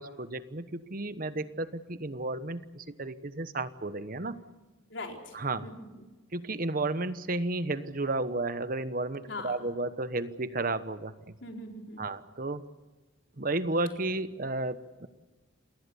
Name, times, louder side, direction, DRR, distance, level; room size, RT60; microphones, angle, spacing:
voice 1, 0.0-4.4 5.3-5.7 6.3-11.3 12.0-12.6 13.4-15.1, right 2 dB, 50° right, 12 dB, 1.1 m, -33 dB
voice 2, 4.9-5.4 5.6-6.1 9.3-9.6 11.4-12.1, left 2 dB, 80° left, 2 dB, 4.3 m, -41 dB
27.5 x 20.0 x 7.1 m, 1.2 s
head